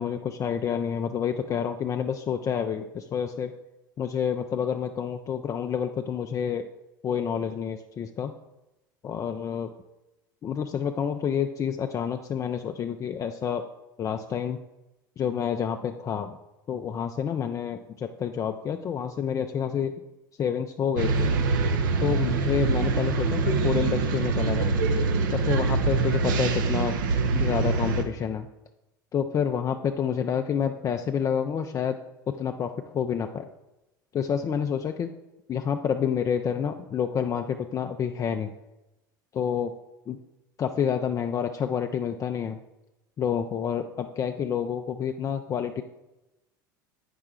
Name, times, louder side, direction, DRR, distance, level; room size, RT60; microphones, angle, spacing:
voice 1, 0.0-3.5 4.0-6.7 7.0-8.3 9.0-9.7 10.4-13.7 14.0-14.6 15.2-16.4 16.7-19.9 20.4-21.3 22.0-24.7 25.3-27.0 27.3-28.5 29.1-32.0 32.3-33.5 34.1-35.1 35.5-38.5 39.3-39.7 40.1-40.2 40.6-42.6 43.2-45.8, left 8 dB, 30° left, 6 dB, 0.4 m, -28 dB
sound 1, 21.0-28.0, right 4 dB, 70° right, 0.7 m, -24 dB
8.5 x 5.8 x 3.7 m, 0.97 s
figure-of-eight pair, 75°, 11 cm